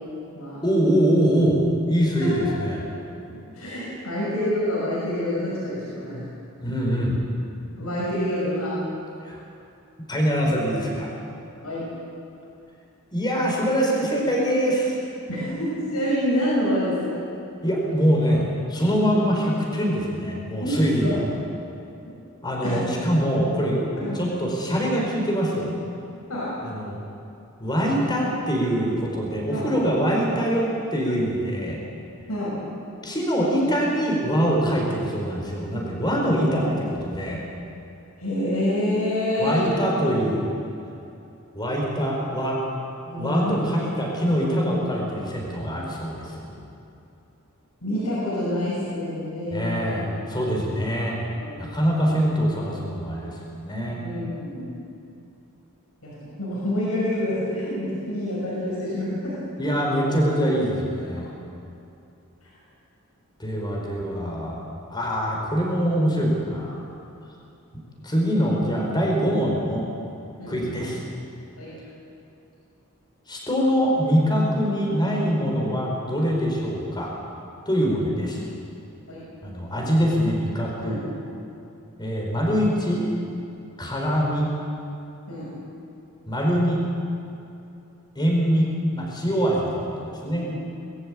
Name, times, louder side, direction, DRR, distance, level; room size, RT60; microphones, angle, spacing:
voice 1, 0.6-2.8 6.6-7.2 9.3-9.4 10.1-11.1 13.1-15.0 17.6-21.3 22.4-23.8 24.1-25.7 26.6-27.0 27.6-31.8 33.0-37.4 39.4-40.5 41.5-42.6 43.1-46.6 49.5-51.2 51.6-53.3 53.6-54.0 59.6-61.3 63.4-64.6 64.9-66.8 68.0-69.8 70.5-71.0 73.3-77.1 77.7-78.4 79.4-81.0 82.0-83.0 83.8-84.5 86.3-86.8 88.1-90.5, equal, 20° left, -2 dB, 4.6 m, -23 dB
voice 2, 3.3-6.3 7.7-8.8 11.6-11.9 15.3-17.2 19.0-19.2 20.6-21.2 22.1-22.2 22.6-22.9 24.0-24.2 26.3-26.6 29.5-29.7 32.3-32.6 38.2-39.7 43.0-43.8 47.8-50.0 51.3-51.8 54.0-54.8 56.0-59.4 59.9-60.0 70.4-70.6 71.6-71.7 79.1-79.3 80.8-81.0 85.3-85.5 90.3-90.5, left 1 dB, 85° left, -7 dB, 6.5 m, -27 dB
21.5 x 14.5 x 8.6 m, 2.7 s
head